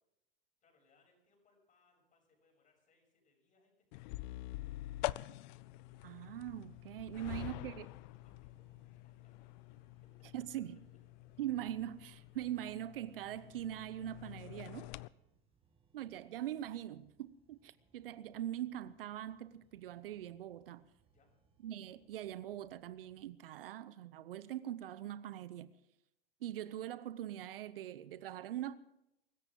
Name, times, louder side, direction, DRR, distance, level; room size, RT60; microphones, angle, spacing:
voice 1, 0.6-4.9 7.1-9.5 10.0-10.3 21.1-21.3, left 3 dB, 25° left, 7.1 m, -74 dB
sound 1, 3.9-15.1, left 19 dB, 50° left, 0.5 m, -46 dB
sound 2, 5.3-23.4, right 5 dB, 20° right, 2.2 m, -73 dB
voice 2, 6.0-7.9 10.3-10.8 11.4-14.9 15.9-20.9 21.6-25.7 26.4-28.8, right 12 dB, 75° right, 0.8 m, -42 dB
23.5 x 14.0 x 3.8 m
hypercardioid pair, 100°, 29 cm